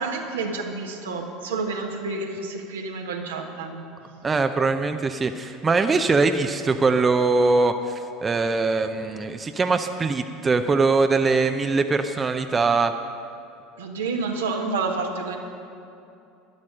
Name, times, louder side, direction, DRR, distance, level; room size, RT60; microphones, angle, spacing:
voice 1, 0.0-3.8 13.8-15.4, right 3 dB, 80° right, 2 dB, 1.4 m, -29 dB
voice 2, 4.2-12.9, right 3 dB, 25° right, 7 dB, 0.6 m, -22 dB
12.0 x 11.0 x 6.5 m, 2.7 s
figure-of-eight pair, 70°, 0 cm